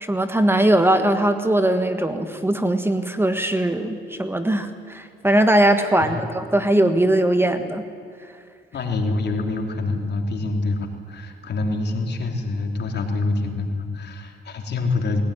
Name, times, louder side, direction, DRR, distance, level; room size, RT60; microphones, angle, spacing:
voice 1, 0.0-7.8, right 1 dB, 10° right, 8 dB, 1.5 m, -20 dB
voice 2, 8.7-15.2, left 3 dB, 60° left, 3 dB, 3.2 m, -26 dB
20.5 x 17.0 x 10.0 m, 2.2 s
cardioid pair, 90°, 20 cm